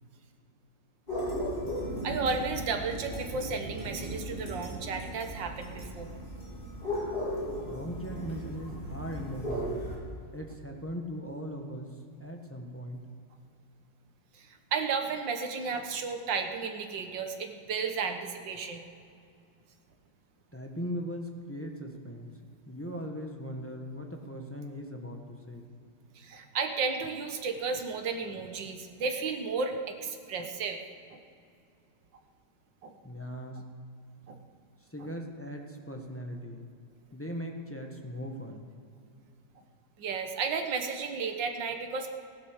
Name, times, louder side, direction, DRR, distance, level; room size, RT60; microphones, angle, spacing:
sound 1, 1.1-10.0, equal, 30° left, 3.9 m, -36 dB
voice 1, 2.0-6.1 14.3-18.8 26.2-30.8 31.1-31.2 32.8-33.0 34.3-34.4 40.0-42.1, right 5 dB, 85° right, 5 dB, 1.9 m, -33 dB
voice 2, 7.6-9.9 10.3-13.1 20.5-22.4 22.7-25.7 33.0-33.6 34.9-36.7 37.1-38.7, equal, 10° left, 2 dB, 1.1 m, -39 dB
15.5 x 11.5 x 6.6 m, 2.4 s
omnidirectional pair, 1.9 m